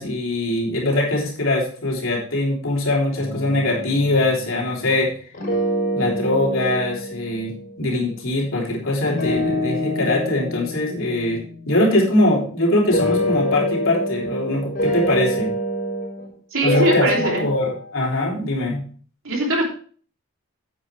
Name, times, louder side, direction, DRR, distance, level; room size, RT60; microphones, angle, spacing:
voice 1, 0.0-5.1 5.9-15.5 16.6-18.8, left 1 dB, 70° left, -2 dB, 3.4 m, -22 dB
sound 1, 3.2-5.0 5.3-7.8 9.0-12.4 12.8-16.3 16.6-17.9, equal, 40° left, 4.8 m, -26 dB
voice 2, 16.5-17.4 19.2-19.6, right 1 dB, 70° right, -1 dB, 3.2 m, -21 dB
9.9 x 8.1 x 3.3 m, 0.43 s
head